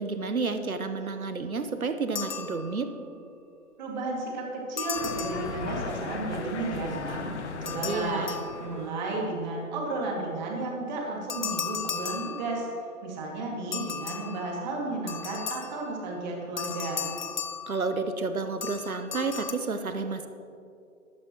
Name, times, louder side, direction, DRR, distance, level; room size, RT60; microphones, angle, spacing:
voice 1, 0.0-2.9 7.8-8.4 17.7-20.3, right 4 dB, 80° right, 8 dB, 1.1 m, -30 dB
sound 1, 2.2-3.1 4.8-6.1 7.7-9.0 11.3-12.9 13.7-16.0 16.6-18.3 18.6-19.5, left 6 dB, 35° left, 0.6 m, -36 dB
voice 2, 3.8-7.3 7.6-8.3 8.6-12.7 13.0-17.1, right 2 dB, 30° right, -1 dB, 2.4 m, -33 dB
sound 2, 4.9-9.2, left 4 dB, 55° left, 1.0 m, -37 dB
14.0 x 12.0 x 3.1 m, 2.5 s
figure-of-eight pair, 135°, 42 cm